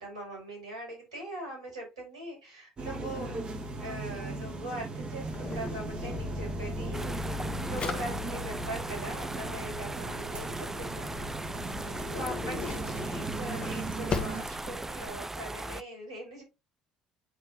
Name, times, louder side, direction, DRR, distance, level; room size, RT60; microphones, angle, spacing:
voice 1, 0.0-3.4 3.8-11.3 11.8-16.4, right 1 dB, 85° right, -1 dB, 4.7 m, -41 dB
sound 1, 2.8-14.4, right 2 dB, 35° right, 1.8 m, -37 dB
Drawer open or close, 5.2-15.2, left 5 dB, 40° left, 1.4 m, -41 dB
sound 2, 6.9-15.8, right 2 dB, 10° right, 0.5 m, -39 dB
9.9 x 4.3 x 3.0 m, 0.24 s
figure-of-eight pair, 55°, 3 cm